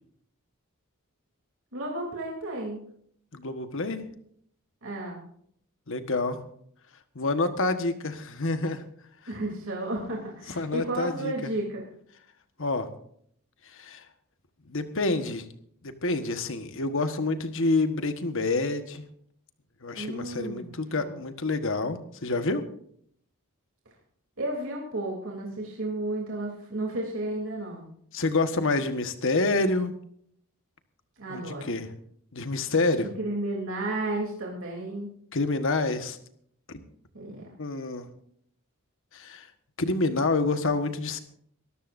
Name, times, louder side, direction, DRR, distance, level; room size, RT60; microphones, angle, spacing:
voice 1, 1.7-2.8 4.8-5.2 9.3-11.8 19.9-20.7 21.0-21.2 24.4-27.8 31.2-31.7 33.2-35.1 37.1-37.5, right 2 dB, 65° right, -2 dB, 3.3 m, -33 dB
voice 2, 3.3-4.0 5.9-6.4 7.1-8.8 10.5-11.5 12.6-12.9 13.7-14.0 14.7-15.4 15.8-19.0 19.8-22.6 28.1-29.9 31.3-31.9 32.3-33.1 35.3-36.2 37.6-38.1 39.1-39.5 39.8-41.2, left 3 dB, 65° left, 8 dB, 1.5 m, -27 dB
23.5 x 13.5 x 2.7 m, 0.65 s
head